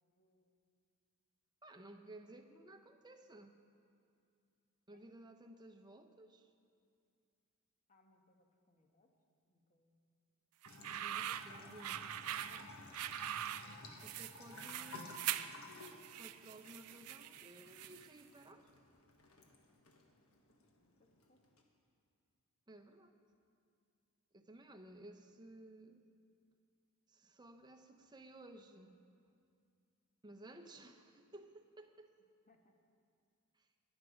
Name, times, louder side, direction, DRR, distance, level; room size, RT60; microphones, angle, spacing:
voice 1, 0.2-0.6 4.9-5.0 7.9-9.1 9.5-9.9 11.6-11.7 12.2-12.7 13.0-13.1 13.6-14.7 20.8-20.9 21.3-21.4 32.5-32.7, left 2 dB, 35° left, 3 dB, 1.3 m, -70 dB
voice 2, 1.6-3.6 4.9-6.5 11.0-12.0 14.0-15.2 16.2-18.7 22.7-23.2 24.3-26.1 27.1-29.0 30.2-32.1 33.5-33.7, right 1 dB, 20° right, 5 dB, 0.7 m, -56 dB
sound 1, 10.6-18.2, right 12 dB, 80° right, 0.4 m, -43 dB
Bathtub (filling or washing) / Trickle dribble, 10.7-21.6, left 2 dB, 70° left, 1.4 m, -55 dB
21.0 x 8.2 x 5.1 m, 2.4 s
head